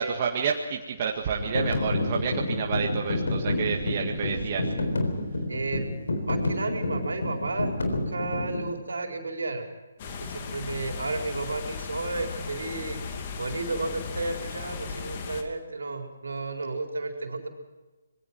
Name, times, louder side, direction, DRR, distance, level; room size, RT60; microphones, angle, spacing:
voice 1, 0.0-4.7, right 6 dB, 35° right, 1 dB, 1.8 m, -29 dB
sound 1, 1.4-8.7, left 2 dB, 70° left, 3.9 m, -29 dB
voice 2, 4.1-4.9 5.5-5.9 6.2-9.6 10.2-13.0 13.4-17.5, right 3 dB, 70° right, 3 dB, 4.2 m, -33 dB
sound 2, 10.0-15.4, left 5 dB, 35° left, 2.7 m, -36 dB
26.0 x 21.5 x 4.7 m, 1.2 s
figure-of-eight pair, 140°, 0 cm